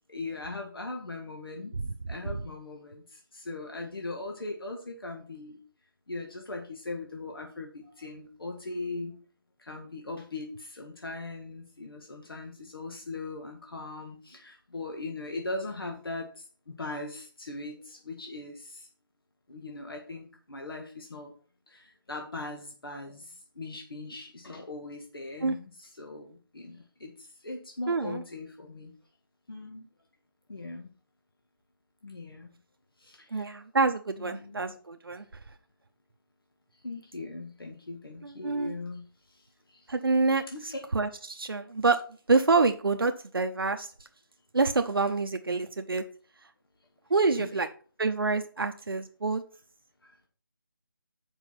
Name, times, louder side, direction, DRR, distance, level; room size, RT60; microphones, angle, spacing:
voice 1, 0.1-1.7 2.1-5.6 6.1-9.1 9.6-18.9 19.5-21.3 21.7-28.9 29.5-29.8 30.5-30.9 32.0-32.5 33.0-33.5 34.2-34.8 36.8-39.9 40.5-40.8 47.4-47.5 50.0-50.1, left 2 dB, 80° left, 2 dB, 1.7 m, -40 dB
voice 2, 27.9-28.2 33.3-35.2 38.2-38.8 39.9-42.0 42.3-43.9 44.5-46.0 47.1-47.7 48.0-49.4, right 3 dB, 75° right, 7 dB, 0.8 m, -27 dB
7.2 x 5.4 x 5.8 m, 0.40 s
figure-of-eight pair, 180°, 12 cm